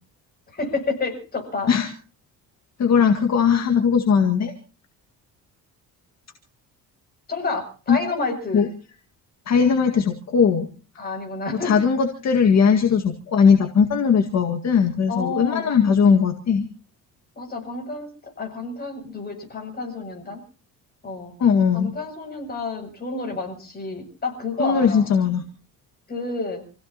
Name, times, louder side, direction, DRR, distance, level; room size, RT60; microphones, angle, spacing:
voice 1, 0.5-1.7 7.3-8.6 11.0-11.7 15.1-15.7 17.3-20.4 21.0-21.3 21.7-25.1 26.1-26.6, left 3 dB, 25° left, 3 dB, 7.5 m, -29 dB
voice 2, 2.8-4.5 7.9-8.0 8.5-8.7 9.5-10.7 11.6-16.7 21.4-22.0 24.6-25.4, left 6 dB, 50° left, 4 dB, 2.0 m, -19 dB
28.5 x 16.5 x 3.0 m, 0.38 s
cardioid pair, 125°, 35 cm